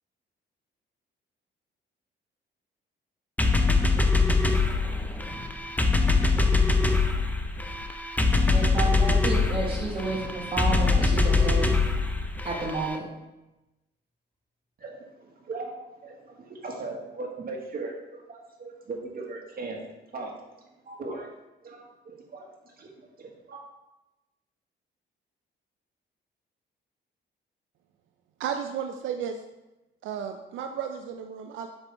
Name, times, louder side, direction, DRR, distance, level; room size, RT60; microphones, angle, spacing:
sound 1, 3.4-13.0, left 3 dB, 10° left, 0.6 m, -23 dB
voice 1, 8.4-11.7 12.4-13.1, right 2 dB, 25° right, 1.5 m, -31 dB
voice 2, 14.8-19.8 20.1-20.3 20.8-21.3 21.6-23.6, right 3 dB, 50° right, 1.6 m, -39 dB
voice 3, 28.4-29.4 30.0-31.7, right 8 dB, 80° right, 0.5 m, -33 dB
7.2 x 5.3 x 3.4 m
cardioid pair, 90°, 20 cm